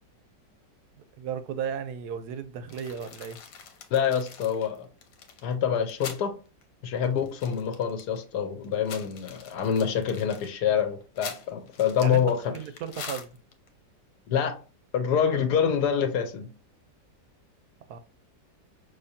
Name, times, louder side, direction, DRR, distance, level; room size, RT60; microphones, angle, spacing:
voice 1, 1.2-3.4 12.0-12.2 12.5-13.3 17.9-18.0, right 8 dB, 70° right, 1.0 m, -35 dB
sound 1, 2.7-6.3 6.6-6.7 7.0-8.2 8.6-13.7, left 6 dB, 90° left, 1.6 m, -44 dB
voice 2, 3.9-4.9 5.4-6.4 6.8-12.5 14.3-14.6 14.9-16.5, left 7 dB, 70° left, 1.2 m, -26 dB
5.7 x 3.2 x 2.7 m
omnidirectional pair, 2.0 m